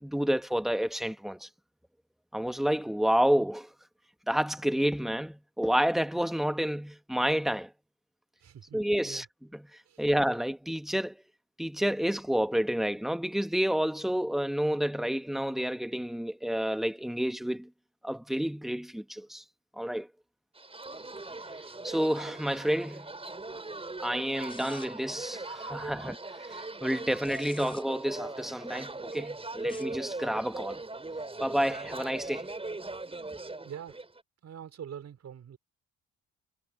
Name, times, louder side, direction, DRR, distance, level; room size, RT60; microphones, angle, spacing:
voice 1, 0.0-1.5 2.3-3.7 4.3-7.7 8.7-9.2 10.0-11.2 11.6-17.7 18.0-19.4 19.8-20.1 21.8-23.1 24.0-26.2 26.5-30.8 31.4-32.5, equal, ahead, 1.3 m, -29 dB
voice 2, 8.4-9.3 9.8-10.1 25.7-25.9 33.6-34.1 34.4-35.6, right 9 dB, 60° right, 5.3 m, -45 dB
sound 1, 20.6-34.2, right 2 dB, 20° right, 5.8 m, -40 dB
sound 2, 24.5-25.1 27.0-27.8 29.6-30.0, left 2 dB, 15° left, 5.0 m, -50 dB
cardioid pair, 90°, 30 cm